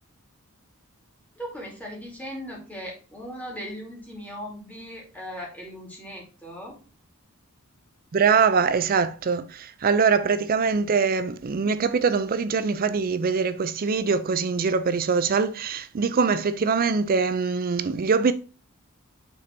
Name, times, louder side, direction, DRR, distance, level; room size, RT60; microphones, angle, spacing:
voice 1, 1.4-6.8, equal, 5° left, 2.4 m, -38 dB
voice 2, 8.1-18.3, right 5 dB, 40° right, 0.4 m, -23 dB
6.3 x 3.9 x 4.3 m
head